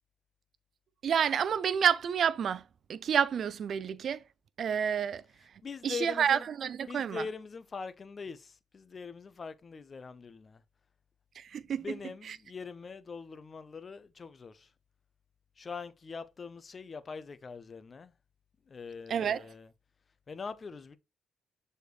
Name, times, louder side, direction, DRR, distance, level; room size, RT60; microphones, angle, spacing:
voice 1, 1.0-2.6 2.9-4.2 4.6-5.2 5.8-7.3 11.4-12.0 12.2-12.4 19.1-19.5, right 8 dB, 60° right, 0.5 m, -29 dB
voice 2, 5.6-6.5 6.9-10.6 11.5-14.7 15.6-18.1 18.7-19.7 20.3-21.0, left 5 dB, 35° left, 0.7 m, -42 dB
6.8 x 4.4 x 3.2 m
cardioid pair, 90°, 0 cm